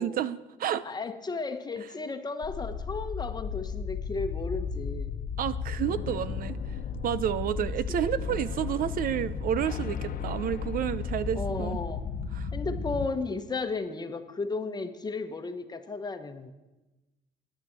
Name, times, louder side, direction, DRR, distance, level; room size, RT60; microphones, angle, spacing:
voice 1, 0.0-0.8 5.4-6.6 7.0-11.8 12.3-12.5, right 10 dB, 55° right, 16 dB, 0.6 m, -30 dB
voice 2, 0.8-5.1 7.9-8.3 11.3-12.0 12.5-16.5, left 3 dB, 25° left, 8 dB, 1.2 m, -34 dB
sound 1, 2.4-13.1, left 5 dB, 55° left, 1.0 m, -34 dB
13.0 x 10.5 x 8.1 m, 1.1 s
cardioid pair, 110°, 17 cm